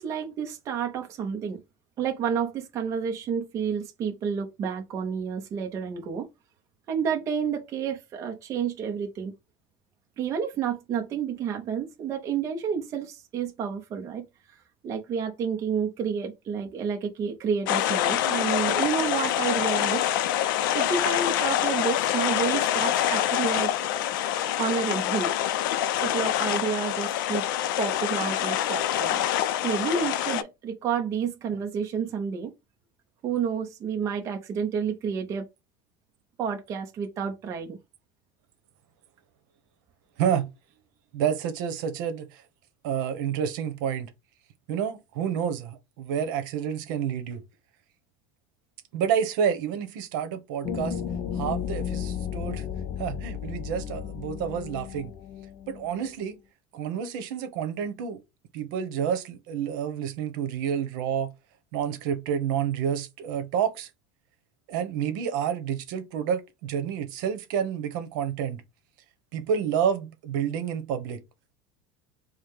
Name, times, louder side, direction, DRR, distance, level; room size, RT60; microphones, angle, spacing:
voice 1, 0.0-1.6 2.0-6.3 6.9-9.3 10.2-14.3 14.8-20.1 20.7-23.9 24.6-25.3 26.0-27.4 27.8-29.2 29.6-32.5 33.2-35.5 36.4-37.8, right 7 dB, 30° right, 0.7 m, -30 dB
sound 1, 17.7-30.4, left 12 dB, 85° left, 0.5 m, -26 dB
voice 2, 41.1-42.4 42.8-44.1 44.7-47.4 48.9-51.0 51.3-52.6 53.0-55.1 55.7-56.4 56.7-58.2 58.5-61.3 61.7-63.9 64.7-68.6 69.3-71.2, right 8 dB, 70° right, 1.0 m, -29 dB
sound 2, 50.6-56.1, left 8 dB, 35° left, 0.5 m, -34 dB
4.8 x 2.2 x 3.5 m
cardioid pair, 170°, 11 cm